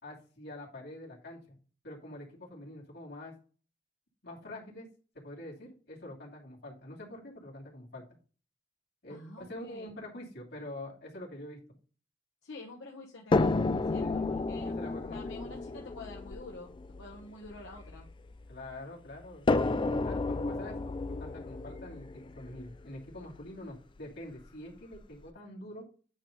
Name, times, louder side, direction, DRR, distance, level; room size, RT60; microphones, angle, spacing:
voice 1, 0.0-1.5 1.8-3.3 4.2-4.9 5.1-8.0 9.0-11.6 14.0-14.3 14.6-15.5 18.5-25.8, left 1 dB, 60° left, -2 dB, 2.7 m, -45 dB
voice 2, 9.1-9.9 12.4-14.7 15.1-18.1, left 2 dB, 80° left, -2 dB, 1.2 m, -48 dB
sound 1, 13.3-18.5 19.5-23.4 24.4-24.5 24.9-25.0, left 3 dB, 25° left, 0.4 m, -32 dB
8.8 x 3.2 x 5.2 m, 0.39 s
head